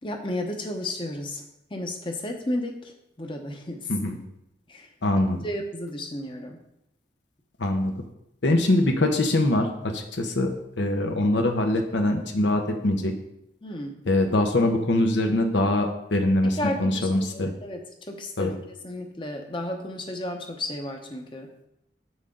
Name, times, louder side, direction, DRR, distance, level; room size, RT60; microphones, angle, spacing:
voice 1, 0.0-1.4 1.7-3.9 4.7-4.9 5.4-6.6 13.6-14.0 16.5-21.5, left 1 dB, 30° left, 4 dB, 0.9 m, -33 dB
voice 2, 5.0-5.4 7.6-7.9 8.4-13.1 14.1-17.5 18.4-18.5, left 1 dB, 85° left, 4 dB, 1.0 m, -23 dB
7.9 x 6.3 x 3.8 m, 0.82 s
head